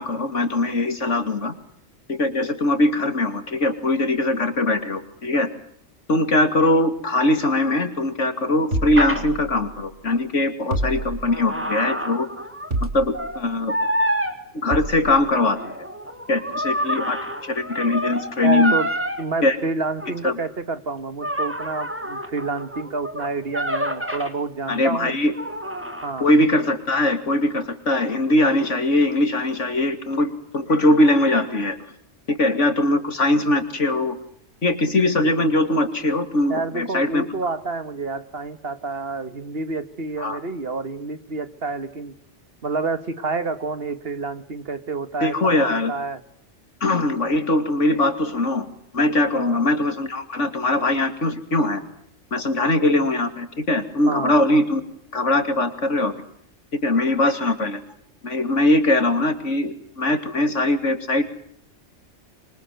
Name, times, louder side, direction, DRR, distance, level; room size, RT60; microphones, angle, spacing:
voice 1, 0.0-1.5 2.1-5.5 6.1-12.3 12.8-13.8 14.5-15.8 16.3-18.7 19.4-19.6 20.2-20.4 24.7-25.3 26.2-31.8 32.3-34.2 34.6-37.2 40.2-40.4 45.2-45.9 46.8-48.7 48.9-51.8 52.3-54.8 55.1-56.1 56.8-57.8 58.2-61.2, left 1 dB, 80° left, 10 dB, 3.0 m, -21 dB
sound 1, 8.7-9.8 10.7-11.6 12.7-13.4 14.7-15.2, right 2 dB, 75° right, 3.7 m, -28 dB
sound 2, 9.0-9.2 10.8-12.8 13.1-13.4 13.7-14.3 15.1-19.2 20.0-20.2 21.2-24.3 25.3-26.2, equal, 10° right, 3.0 m, -27 dB
voice 2, 18.4-18.9 19.2-25.2 26.0-26.3 36.5-42.1 42.6-46.2 49.3-49.6 54.1-54.3, right 3 dB, 55° right, 13 dB, 1.7 m, -29 dB
26.0 x 24.5 x 9.2 m, 0.64 s
omnidirectional pair, 1.2 m